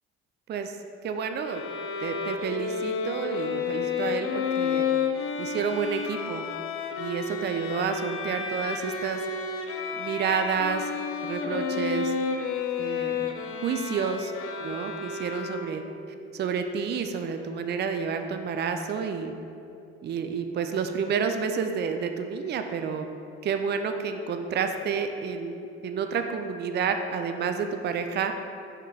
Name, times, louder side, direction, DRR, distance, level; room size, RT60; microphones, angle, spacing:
voice 1, 1.0-1.6 2.0-4.9 5.4-6.4 7.0-9.2 9.9-10.9 11.2-12.1 12.8-13.3 13.6-14.3 14.6-15.8 16.3-19.3 20.0-23.1 23.4-28.3, right 6 dB, 35° right, 7 dB, 0.5 m, -29 dB
Bowed string instrument, 1.4-16.0, left 5 dB, 45° left, 0.6 m, -31 dB
5.3 x 3.8 x 4.8 m, 2.6 s
hypercardioid pair, 55°, 30 cm